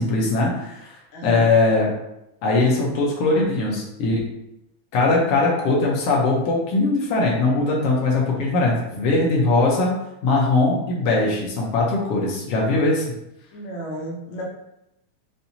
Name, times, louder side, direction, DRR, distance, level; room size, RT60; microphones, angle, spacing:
voice 1, 0.0-0.9 1.2-1.9 2.4-4.2 4.9-9.9 10.2-13.0, left 3 dB, 70° left, -3 dB, 1.4 m, -20 dB
voice 2, 1.1-1.5 13.5-14.4, right 1 dB, 90° left, -3 dB, 1.1 m, -33 dB
5.6 x 2.7 x 2.7 m, 0.87 s
omnidirectional pair, 3.6 m